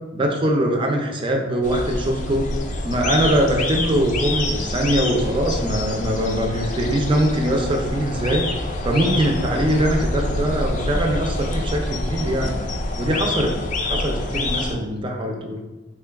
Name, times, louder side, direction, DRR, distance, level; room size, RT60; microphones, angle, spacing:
voice 1, 0.1-2.4 2.8-8.5 8.8-12.6 13.0-13.6 13.8-15.6, right 1 dB, 25° right, 1 dB, 0.4 m, -22 dB
sound 1, 1.6-14.7, left 2 dB, 40° left, 0.4 m, -26 dB
3.6 x 2.2 x 3.4 m, 1.2 s
head